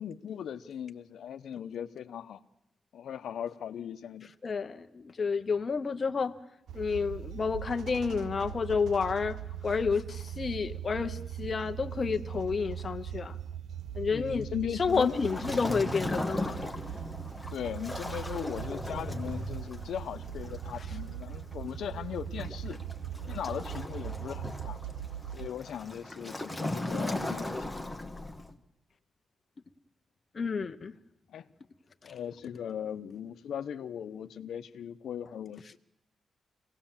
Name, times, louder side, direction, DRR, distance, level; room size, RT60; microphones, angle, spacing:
voice 1, 0.0-2.4 2.9-4.3 14.1-15.3 17.5-22.8 23.3-24.8 25.3-27.9 31.3-31.5 32.0-35.8, left 9 dB, 75° left, 10 dB, 0.8 m, -38 dB
voice 2, 4.4-6.3 6.7-13.4 13.9-14.5 14.8-16.7 30.3-30.9, left 5 dB, 30° left, 7 dB, 0.8 m, -30 dB
sound 1, 6.7-25.5, right 10 dB, 70° right, 0.9 m, -40 dB
Waves surf, 14.9-28.5, left 1 dB, 5° left, 1.1 m, -38 dB
25.0 x 17.5 x 7.3 m, 0.83 s
wide cardioid pair, 175°, 0 cm